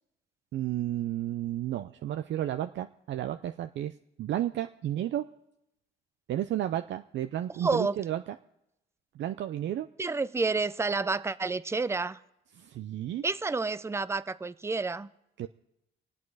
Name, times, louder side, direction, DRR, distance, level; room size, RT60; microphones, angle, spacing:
voice 1, 0.5-3.9 4.2-5.2 6.3-8.2 9.2-9.9 12.6-13.2 15.4-15.5, right 12 dB, 65° right, 0.5 m, -32 dB
voice 2, 7.6-8.0 10.0-12.2 13.2-15.1, right 3 dB, 15° right, 0.5 m, -29 dB
25.0 x 8.4 x 4.8 m
cardioid pair, 90°, 20 cm